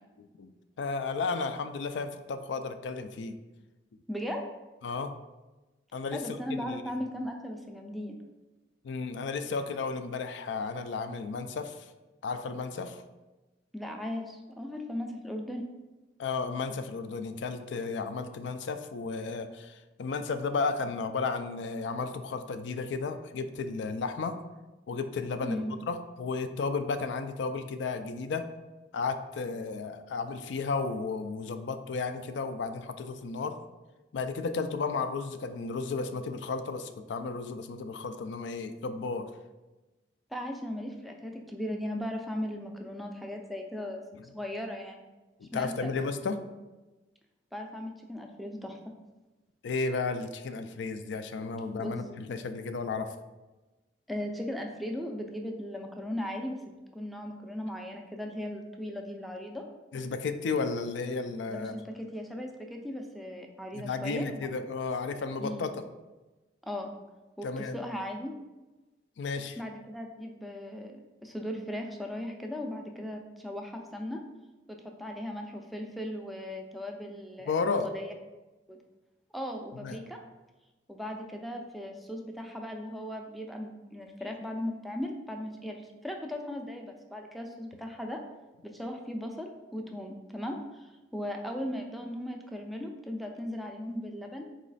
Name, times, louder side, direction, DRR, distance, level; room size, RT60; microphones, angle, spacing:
voice 1, 0.4-3.4 4.8-5.1 5.9-6.2 6.5-6.8 8.8-11.9 12.2-13.0 16.2-24.4 24.9-28.5 28.9-33.6 34.1-39.3 44.1-44.2 45.4-46.4 49.6-53.1 59.9-61.8 63.7-65.8 67.4-67.8 69.2-69.6 77.5-77.9 79.8-80.0, left 4 dB, 75° left, 9 dB, 0.4 m, -33 dB
voice 2, 4.1-4.5 6.1-8.2 13.7-15.7 25.4-25.7 40.3-44.0 44.3-45.0 45.5-45.9 47.5-48.9 51.8-51.9 54.1-56.6 56.9-59.6 61.5-64.5 65.4-65.7 66.6-66.9 67.4-68.3 69.6-74.2 74.7-77.6 77.8-78.1 78.7-78.8 79.3-80.2 80.9-88.2 88.6-94.4, left 1 dB, ahead, 2 dB, 0.4 m, -37 dB
4.0 x 3.1 x 3.9 m, 1.1 s
head